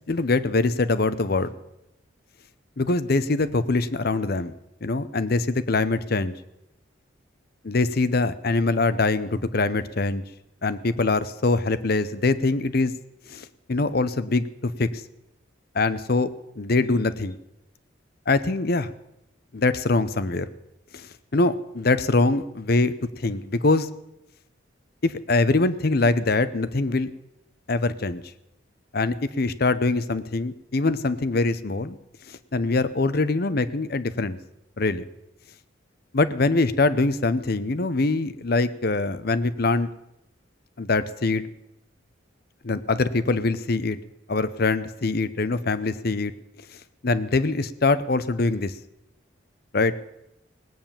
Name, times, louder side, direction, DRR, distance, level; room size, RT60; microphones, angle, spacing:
voice 1, 0.1-1.5 2.8-4.5 4.8-6.3 7.6-10.2 10.6-12.9 13.3-15.0 15.7-16.3 16.6-17.4 18.3-18.9 19.5-20.5 20.9-23.9 25.0-27.1 27.7-28.2 28.9-32.0 32.3-34.4 34.8-35.0 36.1-39.9 40.8-41.4 42.6-44.0 44.3-46.3 47.0-48.7 49.7-50.0, left 3 dB, 50° left, 14 dB, 0.7 m, -23 dB
18.5 x 8.9 x 7.3 m, 0.88 s
head